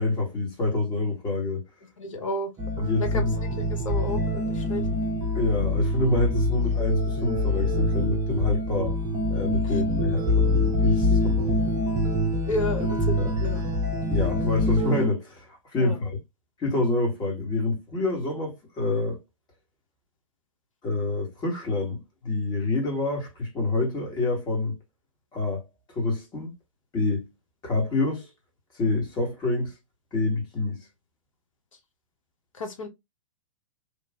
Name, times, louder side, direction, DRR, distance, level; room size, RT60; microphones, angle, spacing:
voice 1, 0.0-1.6 2.8-3.3 5.3-9.0 9.3-11.6 13.2-13.3 14.1-16.2 16.6-19.2 20.8-24.8 25.3-26.5 26.9-27.3 27.6-28.3 28.8-29.7 30.1-30.9, left 2 dB, 25° left, 1.5 m, -27 dB
voice 2, 2.0-2.5 3.0-4.8 9.6-9.7 12.5-13.6 15.8-16.0 32.5-32.9, left 2 dB, 70° left, 0.9 m, -32 dB
sound 1, 2.6-15.0, left 1 dB, 20° right, 0.8 m, -25 dB
3.2 x 2.4 x 2.3 m
figure-of-eight pair, 110°, 17 cm